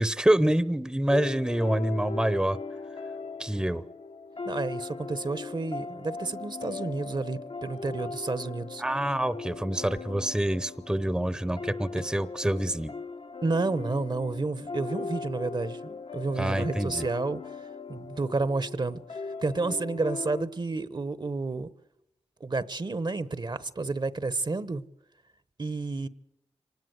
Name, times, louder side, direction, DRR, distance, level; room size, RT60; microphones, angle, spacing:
voice 1, 0.0-2.6 3.4-3.8 8.8-12.9 16.4-17.1, right 1 dB, 5° right, 0.8 m, -26 dB
sound 1, 1.1-20.4, left 4 dB, 60° left, 1.0 m, -39 dB
voice 2, 4.5-8.8 13.4-21.7 22.4-24.8 25.6-26.1, right 3 dB, 40° right, 1.0 m, -31 dB
25.0 x 19.0 x 8.0 m
cardioid pair, 60°, 11 cm